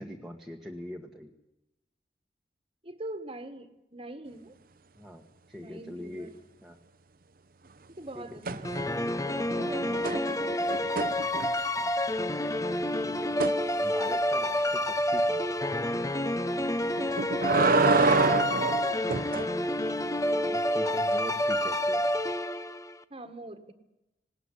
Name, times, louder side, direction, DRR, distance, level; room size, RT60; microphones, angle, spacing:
voice 1, 0.0-1.3 5.0-6.3 6.6-6.8 8.1-8.6 11.8-11.9 13.0-13.3 13.8-15.5 20.3-22.0, equal, ahead, 0 dB, 1.6 m, -42 dB
voice 2, 2.8-4.5 5.6-6.3 7.6-10.9 17.8-19.1 23.1-23.7, right 2 dB, 35° right, 10 dB, 1.7 m, -44 dB
sound 1, 8.4-9.1 9.4-11.8 13.4-13.6 17.0-19.5 21.7-21.8, right 3 dB, 55° right, 0.8 m, -27 dB
sound 2, 8.6-23.0, left 1 dB, 20° left, 0.8 m, -29 dB
19.5 x 18.5 x 9.9 m, 0.93 s
head